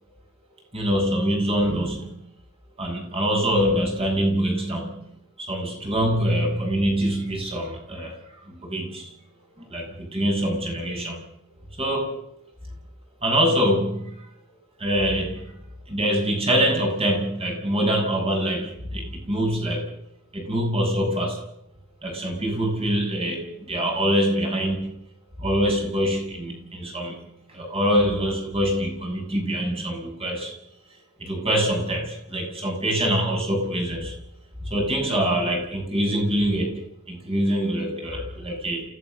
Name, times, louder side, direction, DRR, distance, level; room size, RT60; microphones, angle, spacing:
voice 1, 0.7-2.2 2.8-5.0 5.4-8.1 8.5-9.1 9.6-11.2 11.8-12.1 13.2-14.2 14.8-19.9 20.3-21.4 22.0-24.9 25.4-27.2 27.5-30.5 31.2-34.2 34.6-38.8, equal, 25° right, 1 dB, 7.3 m, -24 dB
28.0 x 16.5 x 6.8 m, 0.76 s
head